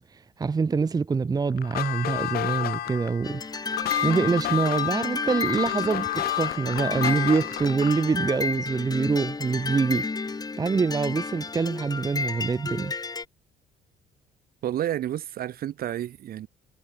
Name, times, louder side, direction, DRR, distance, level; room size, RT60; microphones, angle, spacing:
voice 1, 0.0-3.4 4.0-10.1 10.6-12.9, right 4 dB, 20° right, 0.9 m, -25 dB
sound 1, 1.6-8.2, left 14 dB, 65° left, 1.1 m, -30 dB
sound 2, 3.2-13.2, left 4 dB, 20° left, 4.3 m, -32 dB
voice 2, 14.6-16.5, right 12 dB, 60° right, 4.2 m, -30 dB
cardioid pair, 110°, 17 cm